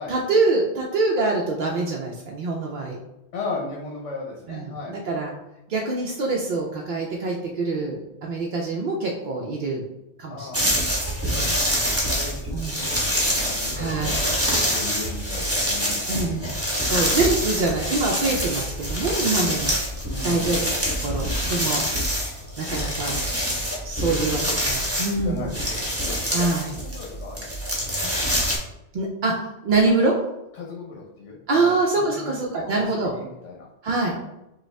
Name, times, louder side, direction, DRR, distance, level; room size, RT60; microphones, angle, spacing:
voice 1, 0.1-3.0 4.5-5.4 5.7-9.8 10.2-10.6 11.3-11.5 12.5-12.8 13.7-14.1 16.1-16.4 16.7-19.7 20.2-21.9 22.6-23.2 23.8-25.5 26.3-26.8 27.9-28.0 28.9-30.2 31.5-33.1 33.8-34.2, right 3 dB, 60° right, -2 dB, 0.6 m, -25 dB
voice 2, 3.3-4.9 10.3-10.8 11.3-16.5 20.1-20.5 24.0-24.5 25.2-26.5 26.8-27.5 30.6-32.3 32.7-32.8 33.2-33.7, left 3 dB, 80° left, -2 dB, 1.0 m, -36 dB
sound 1, 10.5-28.6, equal, 15° right, 0.8 m, -25 dB
5.0 x 2.3 x 3.2 m, 0.92 s
omnidirectional pair, 1.2 m